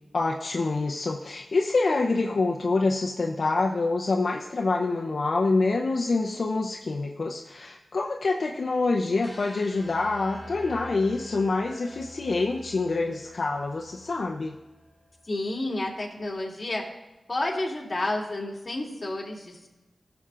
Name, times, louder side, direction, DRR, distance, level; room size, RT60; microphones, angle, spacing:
voice 1, 0.1-14.5, left 3 dB, 70° left, 0 dB, 0.7 m, -26 dB
sound 1, 9.2-15.3, right 1 dB, 10° left, 2.2 m, -47 dB
voice 2, 15.3-16.8 17.3-19.7, left 2 dB, 40° left, -2 dB, 2.7 m, -30 dB
16.5 x 6.9 x 2.5 m, 1.1 s
wide cardioid pair, 65°, 0 cm